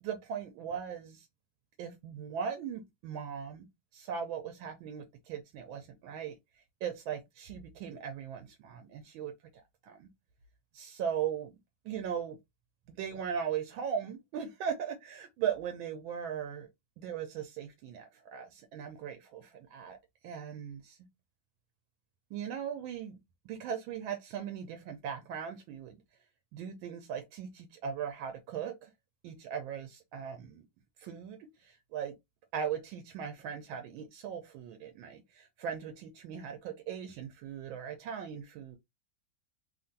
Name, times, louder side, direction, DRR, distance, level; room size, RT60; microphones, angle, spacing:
voice 1, 0.0-1.3 1.8-9.3 9.8-10.1 10.7-11.5 11.8-12.4 12.9-16.7 17.0-20.0 20.2-21.1 22.3-23.2 23.4-26.0 26.5-28.9 29.2-30.6 31.0-32.2 32.5-38.8, right 8 dB, 80° right, 1.3 m, -39 dB
3.4 x 2.4 x 2.5 m
omnidirectional pair, 2.2 m